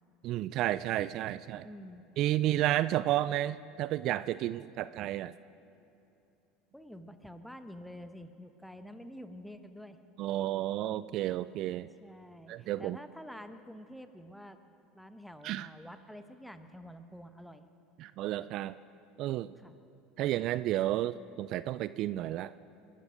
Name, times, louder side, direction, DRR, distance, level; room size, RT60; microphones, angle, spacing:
voice 1, 0.2-1.7 2.2-5.3 10.2-11.9 12.5-13.0 15.4-15.7 18.0-18.8 19.2-19.5 20.2-22.5, right 14 dB, 55° right, 16 dB, 0.3 m, -31 dB
voice 2, 1.6-2.0 6.7-10.0 12.0-14.6 14.9-17.7 19.6-19.8, equal, ahead, 9 dB, 1.1 m, -48 dB
22.0 x 13.0 x 5.1 m, 2.7 s
hypercardioid pair, 80°, 0 cm